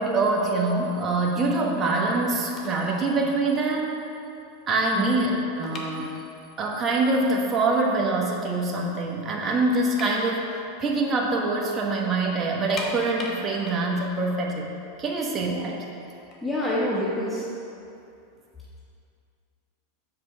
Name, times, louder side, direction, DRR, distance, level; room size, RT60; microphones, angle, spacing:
voice 1, 0.0-4.0 4.7-6.1 6.6-15.9, right 2 dB, 25° right, -1 dB, 1.1 m, -25 dB
sound 1, 2.5-3.0 3.2-3.5 4.0-4.1 4.3-6.6 6.9-7.0 7.6-7.7 8.1-8.8 9.1-9.2 9.5-11.5 11.8-11.9 12.5-15.4 16.1-17.8, left 2 dB, 30° left, 1.1 m, -40 dB
voice 2, 16.4-17.5, left 1 dB, 5° left, -7 dB, 1.1 m, -26 dB
6.6 x 4.7 x 5.4 m, 2.6 s
hypercardioid pair, 115°, 0 cm